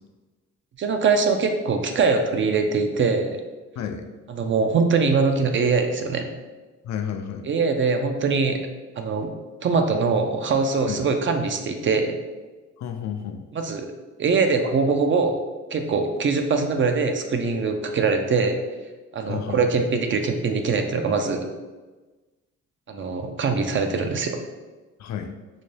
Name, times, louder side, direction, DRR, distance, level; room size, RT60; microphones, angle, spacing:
voice 1, 0.8-3.4 4.3-6.3 7.4-8.6 9.0-9.3 9.6-12.2 13.5-13.9 14.2-15.4 15.7-18.6 19.1-21.5 22.9-24.4, right 4 dB, 40° right, 5 dB, 0.4 m, -22 dB
voice 2, 3.8-4.1 6.8-7.5 10.9-11.0 12.8-13.4 19.3-19.6 22.9-23.0 25.0-25.3, left 8 dB, 65° left, 6 dB, 0.4 m, -31 dB
3.9 x 2.2 x 3.2 m, 1.2 s
cardioid pair, 90°, 30 cm